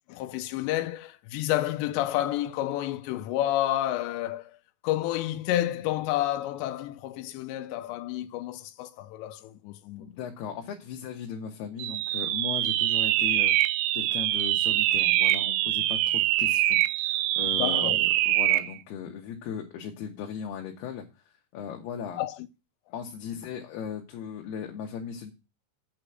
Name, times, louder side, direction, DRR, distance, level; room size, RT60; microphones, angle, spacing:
voice 1, 0.1-4.6 4.8-10.2 17.6-18.0 22.2-22.5, left 14 dB, 90° left, 2.9 m, -30 dB
voice 2, 10.0-21.0 21.5-22.2 22.9-25.3, left 7 dB, 70° left, 3.2 m, -37 dB
sound 1, 11.8-18.7, right 15 dB, 80° right, 2.2 m, -24 dB
8.8 x 5.1 x 7.7 m
omnidirectional pair, 4.9 m